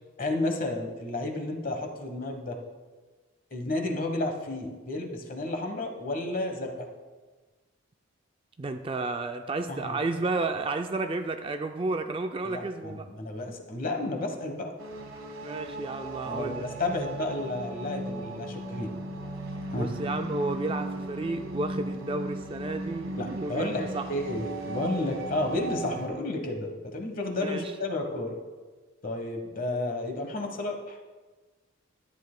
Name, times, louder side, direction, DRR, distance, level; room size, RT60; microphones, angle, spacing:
voice 1, 0.2-2.6 3.5-6.9 9.7-10.0 12.4-14.7 16.2-18.9 19.7-19.9 23.2-28.4 29.0-31.0, left 2 dB, 40° left, 3 dB, 1.2 m, -32 dB
voice 2, 8.6-13.0 15.4-16.7 19.8-24.1 27.4-27.7, right 3 dB, 25° right, 7 dB, 0.3 m, -32 dB
sound 1, 14.8-26.1, right 1 dB, 85° right, 1.3 m, -37 dB
13.5 x 9.6 x 2.2 m, 1.3 s
head